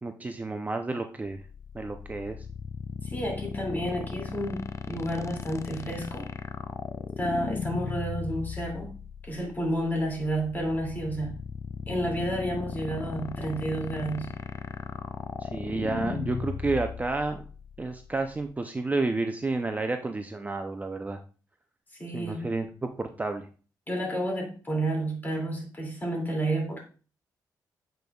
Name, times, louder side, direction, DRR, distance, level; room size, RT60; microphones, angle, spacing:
voice 1, 0.0-1.4 1.7-2.4 15.4-17.4 17.8-21.2 22.1-23.5, right 3 dB, 20° right, 0.5 m, -31 dB
sound 1, 1.4-18.5, left 6 dB, 40° left, 0.4 m, -37 dB
voice 2, 3.0-6.3 7.2-8.9 9.2-11.4 11.9-14.4 21.9-22.5 23.9-26.8, right 1 dB, 25° left, 2.4 m, -31 dB
8.0 x 5.2 x 2.3 m
cardioid pair, 95°, 7 cm